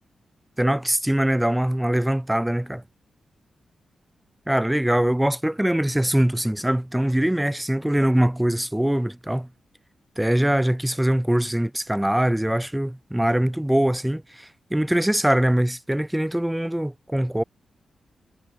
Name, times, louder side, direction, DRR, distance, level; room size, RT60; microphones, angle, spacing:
voice 1, 0.6-2.8 4.5-9.5 10.2-17.4, right 1 dB, 5° right, 0.3 m, -22 dB
wide cardioid pair, 125°, 0 cm